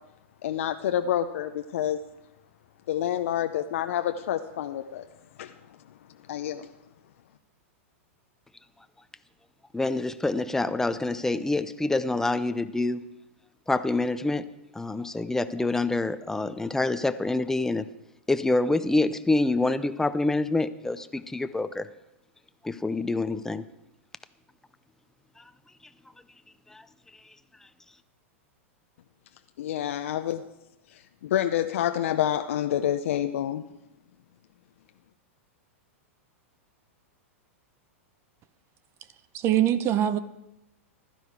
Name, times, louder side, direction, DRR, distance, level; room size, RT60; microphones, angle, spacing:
voice 1, 0.4-2.0 2.9-5.0 5.4-5.5 6.3-6.7 29.6-30.5 31.2-33.6, left 11 dB, 70° left, 0.7 m, -28 dB
voice 2, 9.7-13.0 13.7-14.5 14.7-17.9 18.3-21.9 22.6-23.6 25.4-25.5 26.7-26.8, left 2 dB, 5° left, 0.7 m, -26 dB
voice 3, 39.3-40.2, right 11 dB, 40° right, 0.8 m, -23 dB
15.5 x 12.0 x 4.8 m
hypercardioid pair, 115°, 7 cm